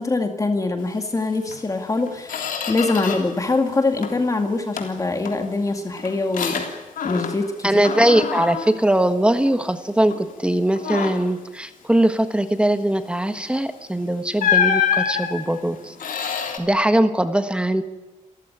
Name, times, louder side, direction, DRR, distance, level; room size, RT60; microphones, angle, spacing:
voice 1, 0.0-6.7 7.0-7.8, left 3 dB, 25° left, 5 dB, 2.1 m, -23 dB
Squeak, 1.5-1.6 2.0-3.4 3.7-4.3 4.8-7.6 7.8-9.7 10.1-10.3 10.7-11.4 13.5-13.7 14.4-16.6, left 7 dB, 85° left, 3.3 m, -26 dB
voice 2, 7.6-15.9 16.6-17.8, right 1 dB, 10° right, 9 dB, 1.4 m, -20 dB
28.5 x 15.0 x 10.0 m, 1.0 s
wide cardioid pair, 135°, 14 cm